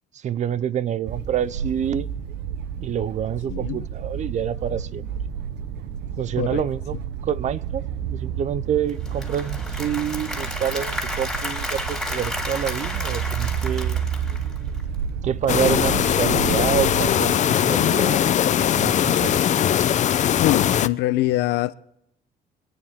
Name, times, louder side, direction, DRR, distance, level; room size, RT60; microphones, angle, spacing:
voice 1, 0.1-2.1 2.8-5.1 6.2-7.0 7.2-14.0 15.2-19.4, right 9 dB, 45° right, 0.6 m, -27 dB
sound 1, 1.1-17.1, right 8 dB, 85° right, 0.9 m, -30 dB
Applause / Crowd, 8.9-15.0, left 1 dB, ahead, 3.4 m, -32 dB
sound 2, 15.5-20.9, left 10 dB, 45° left, 0.6 m, -20 dB
voice 2, 17.8-18.2 20.4-21.7, left 15 dB, 85° left, 0.7 m, -23 dB
25.0 x 9.5 x 3.6 m
cardioid pair, 110°, 17 cm